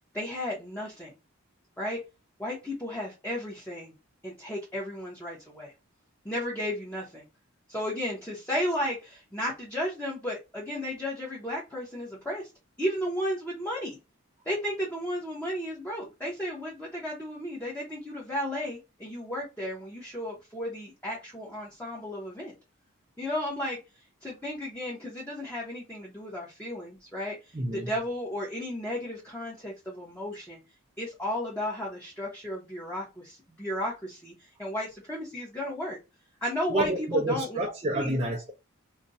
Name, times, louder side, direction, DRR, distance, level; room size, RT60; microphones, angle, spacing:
voice 1, 0.1-1.1 1.8-2.0 2.4-3.9 4.2-5.7 6.2-7.2 7.7-12.5 12.8-14.0 14.4-22.5 23.2-23.8 24.2-30.6 31.0-36.0 36.4-36.9 37.3-37.6 37.9-38.2, equal, 10° left, 0.8 m, -34 dB
voice 2, 27.5-27.9 36.7-38.5, right 1 dB, 25° right, 0.4 m, -28 dB
2.4 x 2.2 x 4.0 m
head